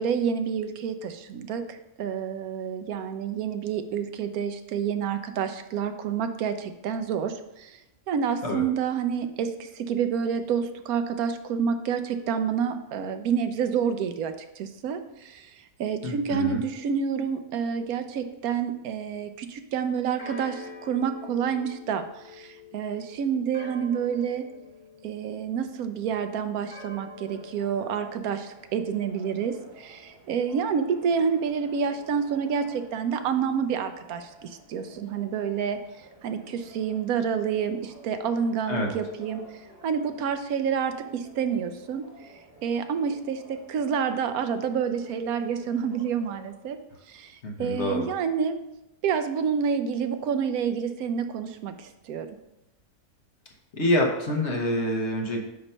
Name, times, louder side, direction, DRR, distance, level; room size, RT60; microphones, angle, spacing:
voice 1, 0.0-7.8 8.1-24.5 25.0-35.8 36.2-42.3 42.6-46.8 47.1-48.6 49.0-52.3, right 7 dB, 80° right, 8 dB, 1.1 m, -28 dB
voice 2, 16.0-16.6 38.7-38.9 47.4-48.1 53.7-55.4, left 1 dB, 50° left, 0 dB, 1.2 m, -26 dB
sound 1, 20.2-25.9 26.7-27.9, left 3 dB, 25° left, 1.1 m, -46 dB
sound 2, 27.3-46.5, right 1 dB, 50° right, 2.8 m, -52 dB
8.5 x 3.0 x 5.5 m, 0.90 s
omnidirectional pair, 1.5 m